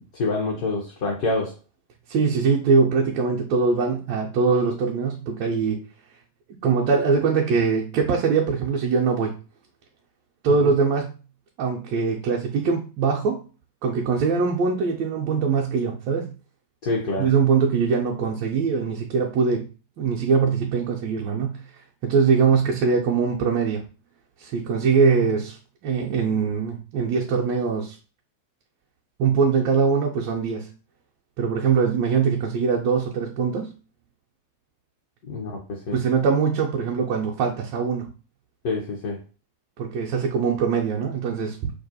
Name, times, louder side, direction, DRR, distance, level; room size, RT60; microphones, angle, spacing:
voice 1, 0.0-1.5 10.6-10.7 16.8-17.3 35.3-36.0 38.6-39.2, left 3 dB, 50° left, -1 dB, 0.6 m, -27 dB
voice 2, 2.1-5.8 6.6-9.3 10.4-11.1 11.6-13.4 13.8-16.3 17.2-19.7 20.0-21.6 22.0-23.8 24.4-25.6 25.8-28.0 29.2-30.7 31.4-33.7 35.9-38.1 39.8-41.7, right 5 dB, 45° right, -2 dB, 0.4 m, -22 dB
2.3 x 2.1 x 2.7 m, 0.35 s
figure-of-eight pair, 90°, 0 cm